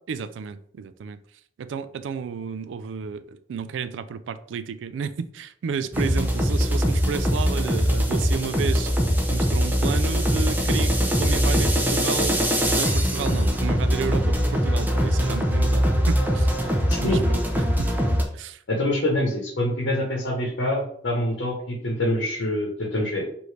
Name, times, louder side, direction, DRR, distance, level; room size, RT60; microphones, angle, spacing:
voice 1, 0.1-1.2 1.6-8.9 9.3-12.4 12.8-16.5 17.0-17.9 18.3-18.6, right 6 dB, 90° right, 13 dB, 0.3 m, -32 dB
sound 1, 5.9-18.2, equal, 10° right, 0.6 m, -22 dB
voice 2, 16.9-17.2 18.7-23.3, left 1 dB, 90° left, -1 dB, 0.9 m, -25 dB
4.7 x 2.6 x 3.2 m, 0.64 s
head